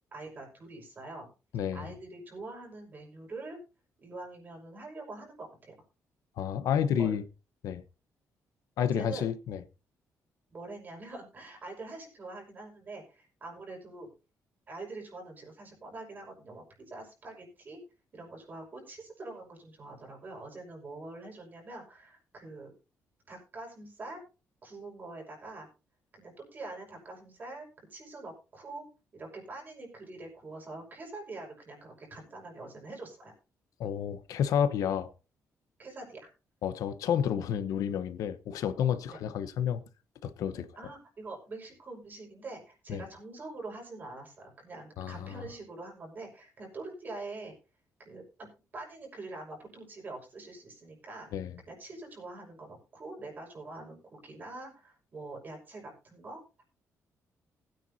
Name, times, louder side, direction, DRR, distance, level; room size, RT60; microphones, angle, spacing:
voice 1, 0.1-1.3 1.7-3.6 4.0-5.7 7.0-7.1 8.8-9.3 10.5-14.1 14.7-17.8 18.1-22.7 23.3-24.2 24.6-25.7 26.1-28.8 29.1-33.3 35.8-36.3 39.1-39.2 40.8-47.5 48.0-48.5 48.7-51.3 51.7-56.6, right 2 dB, 30° right, 5.6 m, -44 dB
voice 2, 1.5-1.9 6.4-7.2 7.6-7.8 8.8-9.6 33.8-35.1 36.6-39.8 40.2-40.7 42.9-43.0 45.0-45.5 51.3-51.5, left 8 dB, 85° left, 1.0 m, -30 dB
20.5 x 9.3 x 2.8 m
cardioid pair, 165°, 6 cm